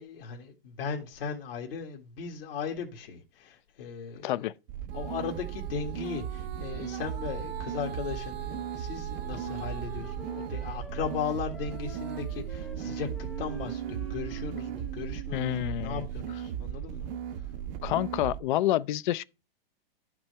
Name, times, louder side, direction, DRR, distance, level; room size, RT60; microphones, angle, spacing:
voice 1, 0.0-4.5 4.9-13.1 13.4-17.1 17.3-17.5, left 6 dB, 75° left, 2.0 m, -37 dB
voice 2, 4.2-4.5 15.3-16.1 17.8-19.2, left 14 dB, 55° left, 0.5 m, -28 dB
sound 1, 4.7-18.4, right 9 dB, 50° right, 0.8 m, -37 dB
Female singing, 4.9-10.8 11.3-15.6 16.2-16.3, right 10 dB, 85° right, 1.1 m, -44 dB
Wind instrument woodwind instrument, 9.2-14.5, left 2 dB, ahead, 0.7 m, -49 dB
11.0 x 5.9 x 3.3 m
hypercardioid pair, 135°, 29 cm